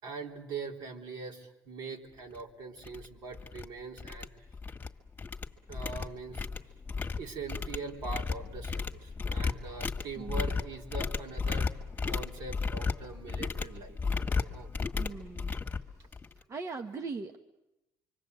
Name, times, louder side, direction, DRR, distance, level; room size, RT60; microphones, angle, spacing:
voice 1, 0.0-4.3 5.7-6.5 7.2-11.7 12.0-14.0 14.3-14.7, right 4 dB, 70° right, 1 dB, 3.9 m, -42 dB
sound 1, 2.3-2.4 2.8-3.1 3.3-3.7 4.0-4.9 5.2-16.4, left 4 dB, 25° left, 1.9 m, -34 dB
voice 2, 10.1-10.6 14.9-15.5 15.9-17.4, right 4 dB, 40° right, 6 dB, 1.2 m, -41 dB
25.5 x 25.0 x 8.0 m, 0.95 s
cardioid pair, 95°, 7 cm